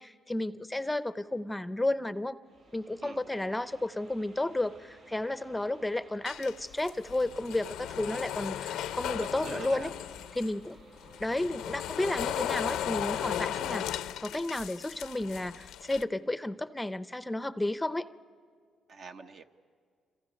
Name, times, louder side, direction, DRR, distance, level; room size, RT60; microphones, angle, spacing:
voice 1, 0.0-2.4 2.7-9.9 10.4-10.8 11.2-13.8 14.2-18.1, left 2 dB, 10° left, 13 dB, 0.6 m, -32 dB
sound 1, 2.4-15.8, right 2 dB, 85° right, 7.5 m, -59 dB
voice 2, 3.0-3.6 9.2-9.9 18.9-19.4, right 4 dB, 60° right, 6 dB, 1.2 m, -44 dB
sound 2, 6.3-10.5 11.0-16.0, left 11 dB, 90° left, 0.6 m, -36 dB
29.0 x 26.0 x 5.2 m, 2.1 s
cardioid pair, 90°, 0 cm